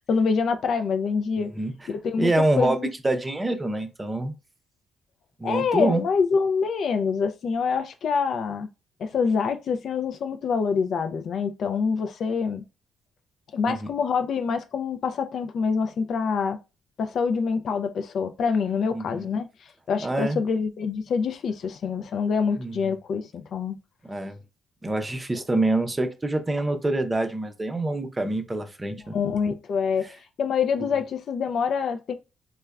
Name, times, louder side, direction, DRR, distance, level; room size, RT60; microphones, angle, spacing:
voice 1, 0.1-1.5 1.9-2.9 5.4-8.7 9.0-12.6 13.5-16.6 17.0-19.5 19.9-23.8 25.3-25.4 29.0-30.1 30.4-32.2, left 5 dB, 60° left, 0.3 m, -26 dB
voice 2, 2.2-2.8 3.0-4.3 5.4-6.0 13.7-13.8 18.9-19.2 20.0-20.4 22.6-22.8 24.1-24.4 24.8-29.2 30.8-30.9, right 2 dB, 20° right, 0.5 m, -26 dB
3.3 x 2.1 x 2.3 m
cardioid pair, 90°, 0 cm